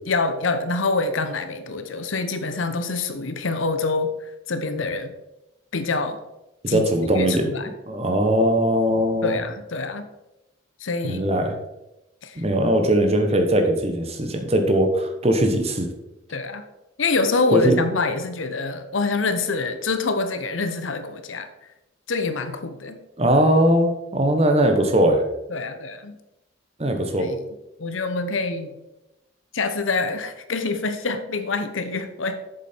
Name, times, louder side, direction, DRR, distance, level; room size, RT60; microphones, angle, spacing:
voice 1, 0.1-5.1 5.7-6.2 6.7-7.7 9.2-10.1 10.8-11.3 12.2-12.4 16.3-16.6 17.0-21.5 22.1-23.0 25.5-26.2 27.2-27.5 27.8-28.7 29.5-32.4, left 3 dB, 80° left, 9 dB, 0.9 m, -26 dB
voice 2, 6.6-7.5 7.9-9.4 11.1-11.5 12.4-15.9 17.5-17.8 23.2-25.2 26.8-27.3, right 1 dB, 30° right, 4 dB, 1.2 m, -20 dB
7.8 x 7.1 x 4.5 m, 0.95 s
head